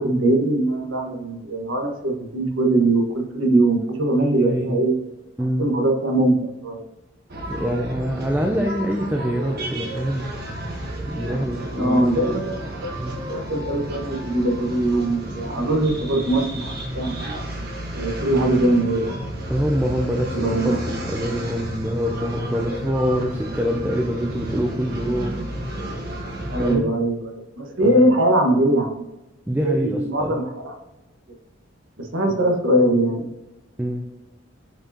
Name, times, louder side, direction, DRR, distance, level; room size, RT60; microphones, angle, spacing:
voice 1, 0.0-4.9 5.6-6.8 11.7-12.6 12.8-12.9 13.3-17.1 17.9-19.1 20.3-20.8 26.5-29.0 29.6-30.7 32.0-33.3, right 1 dB, 85° right, 2 dB, 1.4 m, -21 dB
voice 2, 4.2-4.8 5.4-5.7 7.5-10.3 11.1-12.4 13.0-13.2 19.5-25.4 26.6-26.9 27.8-28.0 29.5-30.4 32.3-32.4 33.8-34.1, equal, 10° right, 1 dB, 0.5 m, -25 dB
sound 1, 7.3-26.8, right 1 dB, 55° right, 1.3 m, -32 dB
7.7 x 4.7 x 2.8 m, 0.97 s
head